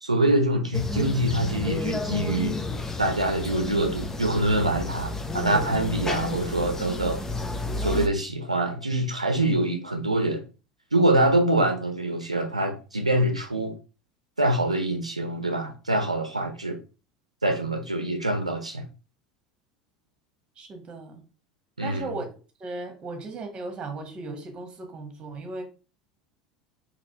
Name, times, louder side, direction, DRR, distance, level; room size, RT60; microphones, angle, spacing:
voice 1, 0.0-2.6 3.0-7.2 7.8-10.4 10.9-13.7 14.4-16.8 17.4-18.8 21.8-22.1, right 1 dB, 90° right, 0.6 m, -25 dB
sound 1, 0.7-8.1, left 2 dB, 15° left, 0.7 m, -31 dB
voice 2, 20.6-21.2 21.8-22.3 22.6-25.6, right 3 dB, 30° right, 1.4 m, -36 dB
4.2 x 2.9 x 4.3 m
figure-of-eight pair, 75°, 3 cm